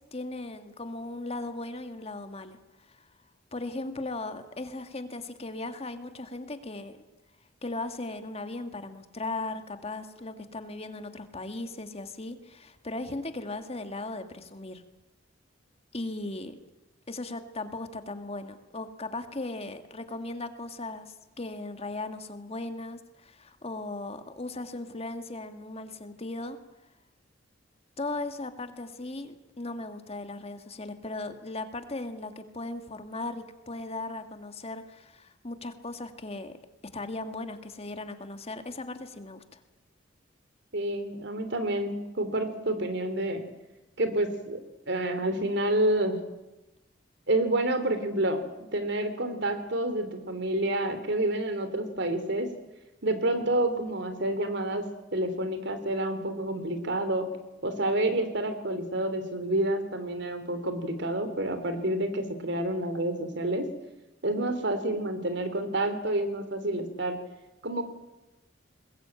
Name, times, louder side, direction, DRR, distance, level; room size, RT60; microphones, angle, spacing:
voice 1, 0.1-3.1 3.5-7.0 7.6-14.8 15.9-16.6 17.1-26.6 28.0-36.5 36.9-39.6, left 2 dB, 35° left, 8 dB, 1.8 m, -37 dB
voice 2, 40.7-43.4 44.0-44.6 44.9-46.2 47.3-48.4 48.7-52.5 53.0-54.9 55.1-57.3 57.6-63.7 64.2-67.2 67.6-67.8, right 1 dB, 65° right, 9 dB, 3.2 m, -28 dB
21.5 x 20.5 x 8.9 m, 0.99 s
head